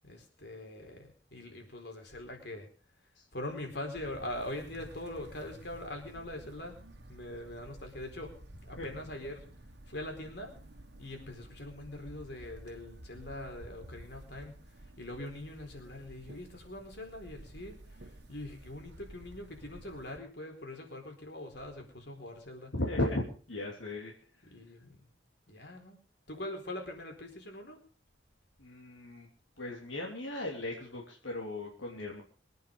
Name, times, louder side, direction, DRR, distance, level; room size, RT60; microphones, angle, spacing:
voice 1, 0.0-2.7 3.3-6.8 7.1-8.3 8.6-9.5 9.9-10.5 11.0-14.5 15.0-22.7 24.5-25.1 25.5-26.0 26.3-27.8, left 1 dB, 60° left, 3 dB, 4.5 m, -43 dB
sound 1, 3.9-20.2, right 1 dB, 60° right, 1.6 m, -52 dB
voice 2, 22.7-24.1 28.6-29.3 29.6-32.2, left 1 dB, 75° left, -1 dB, 3.0 m, -36 dB
23.0 x 9.5 x 5.3 m, 0.41 s
head